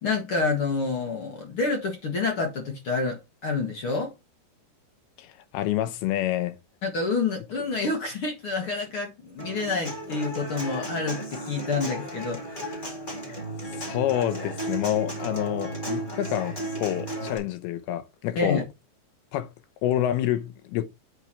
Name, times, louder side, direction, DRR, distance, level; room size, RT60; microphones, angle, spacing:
voice 1, 0.0-4.1 6.8-12.8 18.4-18.6, left 4 dB, 60° left, 1.4 m, -28 dB
voice 2, 5.2-6.6 13.8-18.6 19.3-19.5 19.8-20.9, left 12 dB, 75° left, 2.4 m, -28 dB
Human voice / Acoustic guitar, 9.4-17.4, right 1 dB, 30° left, 0.9 m, -34 dB
8.0 x 4.6 x 4.4 m
omnidirectional pair, 5.1 m